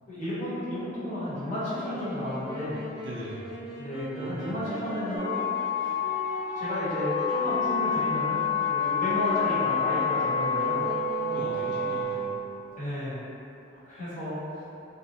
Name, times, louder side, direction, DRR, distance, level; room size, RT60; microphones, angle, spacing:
voice 1, 0.1-2.8 3.8-5.4 5.8-5.9 6.5-8.4 8.7-10.9 12.8-13.2 13.9-14.4, left 1 dB, 40° left, -13 dB, 1.2 m, -32 dB
Wind instrument woodwind instrument, 1.7-12.7, equal, 5° right, 1.0 m, -41 dB
voice 2, 3.0-3.4 4.1-4.5 11.2-12.3 13.7-13.9, right 1 dB, 65° right, -7 dB, 0.6 m, -40 dB
sound 1, 5.2-12.0, left 8 dB, 70° left, 1.3 m, -29 dB
Wind instrument woodwind instrument 2, 6.8-12.3, right 6 dB, 25° right, 0.7 m, -35 dB
2.7 x 2.3 x 2.9 m, 2.8 s
head